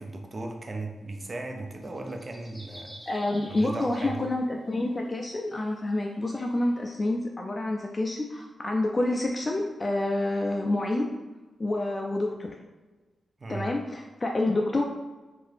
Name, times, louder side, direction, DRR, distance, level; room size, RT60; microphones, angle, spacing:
voice 1, 0.0-3.0 3.5-4.2 13.4-13.7, right 2 dB, 40° right, 3 dB, 0.4 m, -36 dB
sound 1, 1.8-4.8 5.4-6.9, equal, 15° left, 0.7 m, -49 dB
voice 2, 3.1-11.1 11.6-12.5 13.5-14.8, left 2 dB, 30° left, 1 dB, 0.3 m, -28 dB
2.8 x 2.5 x 3.2 m, 1.2 s
cardioid pair, 70°, 0 cm